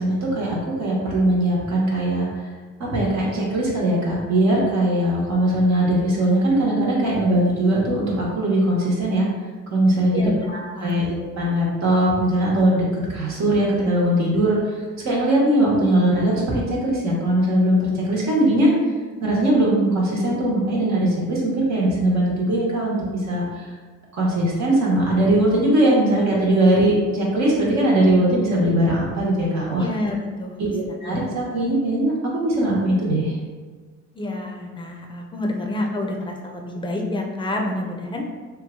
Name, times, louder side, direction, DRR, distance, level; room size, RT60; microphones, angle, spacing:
voice 1, 0.0-2.5 2.8-9.3 9.7-11.1 11.4-12.8 13.1-18.7 19.2-23.7 24.1-29.9 30.7-33.4, right 1 dB, 65° right, -4 dB, 1.1 m, -20 dB
voice 2, 29.8-31.3 34.1-38.3, left 1 dB, 15° left, 1 dB, 0.5 m, -28 dB
3.1 x 2.3 x 3.6 m, 1.4 s
cardioid pair, 90°, 30 cm